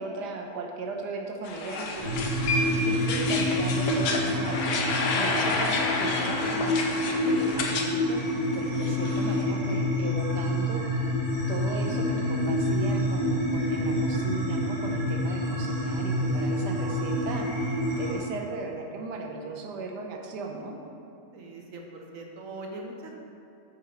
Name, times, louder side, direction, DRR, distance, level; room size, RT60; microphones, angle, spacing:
voice 1, 0.0-2.1 2.6-6.8 7.2-8.2 8.5-10.8 11.5-20.8, right 3 dB, 90° right, 2 dB, 1.5 m, -37 dB
sound 1, 1.4-7.9 8.2-9.4, left 3 dB, 90° left, 1.4 m, -30 dB
sound 2, 2.0-18.1, left 1 dB, 15° left, 2.2 m, -27 dB
voice 2, 21.3-23.1, right 2 dB, 60° right, 1 dB, 1.2 m, -41 dB
8.5 x 6.5 x 4.4 m, 2.7 s
omnidirectional pair, 1.7 m